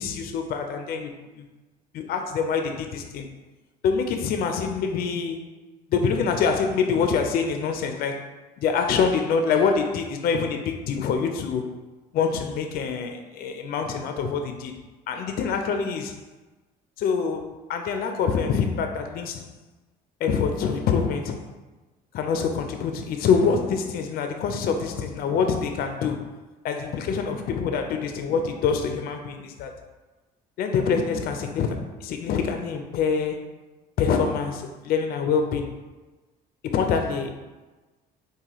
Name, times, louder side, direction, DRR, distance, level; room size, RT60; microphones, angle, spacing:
voice 1, 0.0-1.4 1.9-3.3 3.8-5.4 5.9-8.3 8.6-11.7 12.1-14.8 15.1-16.2 17.0-19.4 20.2-21.4 22.1-26.2 26.6-29.7 30.6-33.4 34.0-35.7 36.6-37.3, left 6 dB, 60° left, 5 dB, 0.4 m, -25 dB
3.8 x 2.5 x 2.9 m, 1.2 s
cardioid pair, 110°, 17 cm